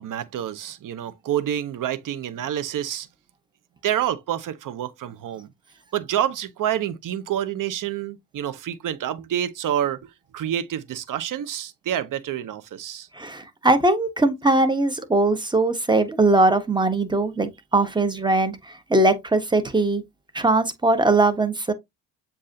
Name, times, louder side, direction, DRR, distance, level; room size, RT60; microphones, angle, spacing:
voice 1, 0.0-3.1 3.8-5.5 5.9-13.1, right 10 dB, 50° right, 0.8 m, -28 dB
voice 2, 13.1-20.0 20.3-21.7, right 2 dB, 10° right, 1.2 m, -20 dB
7.3 x 2.8 x 2.7 m
hypercardioid pair, 45°, 42 cm